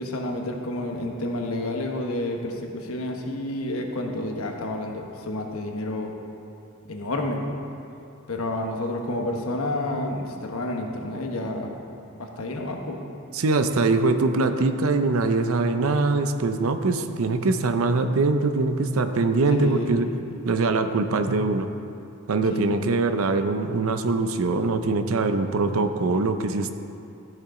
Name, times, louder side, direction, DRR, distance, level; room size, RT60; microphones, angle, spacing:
voice 1, 0.0-6.1 6.9-7.6 8.3-11.8 12.2-13.0 19.6-20.1 22.5-22.8, left 1 dB, 70° left, 2 dB, 1.0 m, -30 dB
voice 2, 13.3-20.1 20.4-21.7 22.3-26.7, right 3 dB, 70° right, 8 dB, 0.6 m, -23 dB
13.5 x 6.6 x 3.8 m, 2.6 s
head